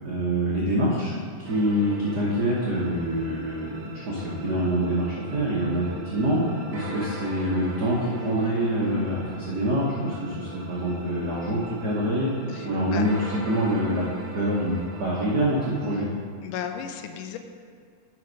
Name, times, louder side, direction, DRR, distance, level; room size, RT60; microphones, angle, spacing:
voice 1, 0.0-12.3 12.6-13.2 13.4-14.0 14.3-16.1, right 1 dB, 90° right, -6 dB, 0.8 m, -25 dB
sound 1, 1.4-16.0, right 2 dB, 55° right, 1.2 m, -40 dB
voice 2, 12.5-13.1 16.4-17.4, left 8 dB, 80° left, 6 dB, 2.2 m, -35 dB
9.7 x 5.7 x 5.3 m, 2.1 s
omnidirectional pair, 3.8 m